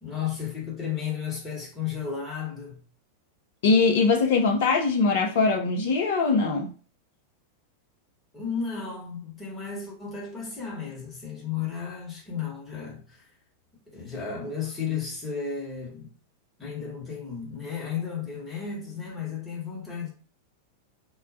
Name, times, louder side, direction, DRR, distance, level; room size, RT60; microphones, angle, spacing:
voice 1, 0.0-2.8 8.3-13.3 13.9-16.1 16.6-20.1, left 7 dB, 20° left, 1.1 m, -33 dB
voice 2, 3.6-6.7, left 4 dB, 55° left, 0.5 m, -22 dB
2.2 x 2.1 x 2.6 m
figure-of-eight pair, 90°, 0 cm